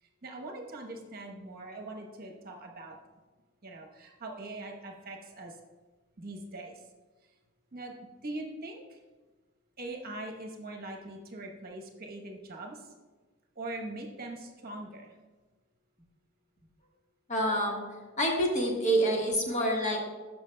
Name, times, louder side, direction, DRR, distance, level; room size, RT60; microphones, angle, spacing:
voice 1, 0.0-3.0 3.6-5.6 6.2-6.9 7.2-7.3 7.7-7.9 8.2-9.0 9.8-12.9 13.5-15.2, right 2 dB, 50° right, 1 dB, 1.0 m, -42 dB
voice 2, 17.3-17.8 18.2-20.0, right 1 dB, 40° left, -1 dB, 1.3 m, -27 dB
12.5 x 6.1 x 2.2 m, 1.3 s
head